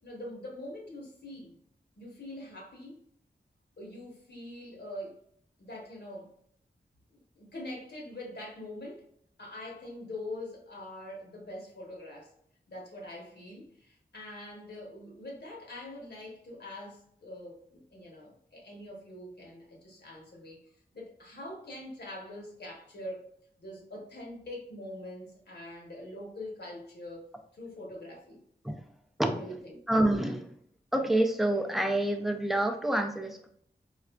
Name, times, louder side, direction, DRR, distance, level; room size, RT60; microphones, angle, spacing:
voice 1, 0.0-1.6 2.0-3.0 3.8-5.2 5.6-6.3 7.1-9.0 9.4-12.3 12.7-20.6 20.9-23.2 23.6-28.4 29.2-29.8, left 1 dB, 70° left, 1.0 m, -44 dB
voice 2, 29.2-29.6 29.9-30.5 30.9-33.5, right 1 dB, ahead, 0.4 m, -27 dB
4.6 x 2.4 x 2.2 m
wide cardioid pair, 85°, 18 cm